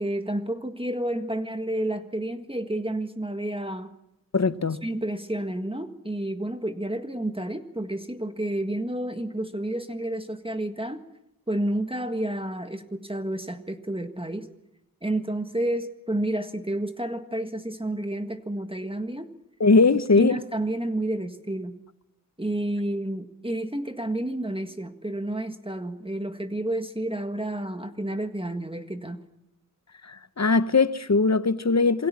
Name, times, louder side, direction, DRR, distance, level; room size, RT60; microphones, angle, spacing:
voice 1, 0.0-3.9 4.8-11.0 11.5-14.5 15.0-19.3 20.2-21.8 22.4-29.2, right 1 dB, 15° right, 1.7 m, -30 dB
voice 2, 4.3-4.8 19.6-20.4 30.1-32.1, left 4 dB, 50° left, 1.0 m, -20 dB
27.5 x 22.0 x 7.4 m
wide cardioid pair, 55°, 34 cm